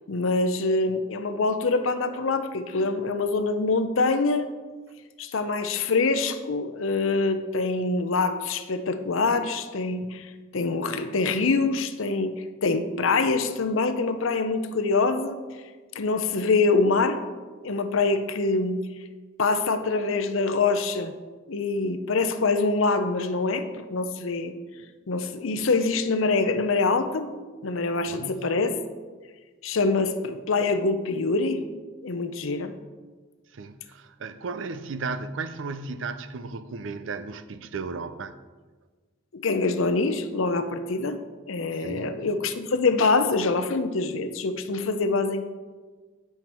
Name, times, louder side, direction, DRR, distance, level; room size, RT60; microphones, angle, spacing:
voice 1, 0.1-4.5 5.2-15.4 15.9-17.2 17.6-18.9 19.4-21.1 21.5-24.5 25.1-27.3 27.6-28.8 29.6-31.6 32.0-32.7 39.3-41.2 41.5-45.4, left 3 dB, 80° left, 9 dB, 0.6 m, -25 dB
voice 2, 28.1-28.5 33.5-38.4 41.8-42.3, right 4 dB, 70° right, 12 dB, 0.5 m, -35 dB
9.1 x 5.7 x 4.4 m, 1.4 s
head